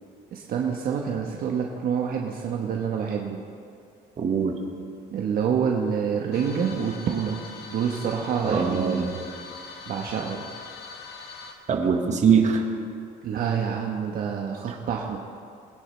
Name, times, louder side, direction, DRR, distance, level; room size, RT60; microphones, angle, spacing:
voice 1, 0.3-3.4 5.1-7.4 7.7-9.2 9.9-10.5 13.2-15.2, right 7 dB, 60° right, 0 dB, 1.2 m, -27 dB
voice 2, 4.2-4.6 8.4-9.1 11.7-12.6 14.7-14.8, right 6 dB, 45° right, 2 dB, 1.7 m, -22 dB
sound 1, 6.3-11.5, left 4 dB, 75° left, 1.6 m, -42 dB
22.0 x 10.0 x 3.3 m, 2.3 s
cardioid pair, 110°, 17 cm